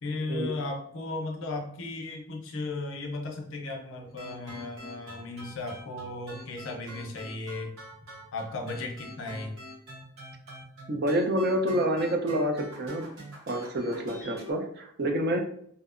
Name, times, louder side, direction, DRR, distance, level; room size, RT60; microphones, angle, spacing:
voice 1, 0.0-7.7 8.3-9.6, left 2 dB, 60° left, 3 dB, 0.4 m, -35 dB
sound 1, 4.1-14.5, equal, 65° right, 0.9 m, -45 dB
voice 2, 10.9-13.1 13.5-15.4, right 1 dB, 45° right, 3 dB, 0.4 m, -28 dB
2.7 x 2.1 x 2.4 m, 0.65 s
head